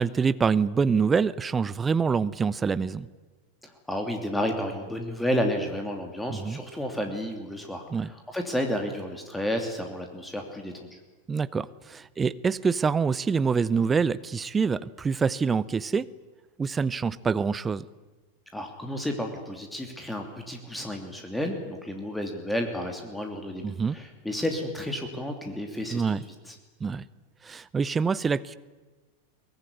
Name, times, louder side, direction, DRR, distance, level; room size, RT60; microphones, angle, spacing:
voice 1, 0.0-3.1 6.3-6.6 7.9-8.1 11.3-16.1 16.6-17.9 23.6-23.9 25.9-26.2 26.8-27.0 27.4-28.6, right 5 dB, 15° right, 17 dB, 0.8 m, -26 dB
voice 2, 3.6-11.0 18.5-23.6 23.9-26.5, equal, 5° left, 3 dB, 3.0 m, -31 dB
23.5 x 19.5 x 9.7 m, 1.3 s
figure-of-eight pair, 90°, 0 cm